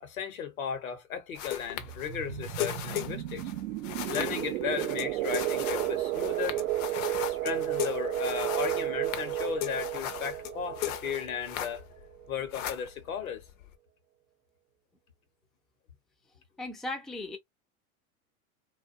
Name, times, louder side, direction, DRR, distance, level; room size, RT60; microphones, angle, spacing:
voice 1, 0.0-3.5 4.1-6.6 7.2-11.8 12.3-13.4, left 7 dB, 85° left, 1.0 m, -35 dB
sound 1, 1.3-12.1 12.3-13.7, left 12 dB, 65° left, 0.7 m, -38 dB
sound 2, 1.8-12.3, right 15 dB, 70° right, 0.6 m, -33 dB
voice 2, 16.6-17.4, left 2 dB, ahead, 0.4 m, -36 dB
2.5 x 2.4 x 2.5 m
hypercardioid pair, 100°, 41 cm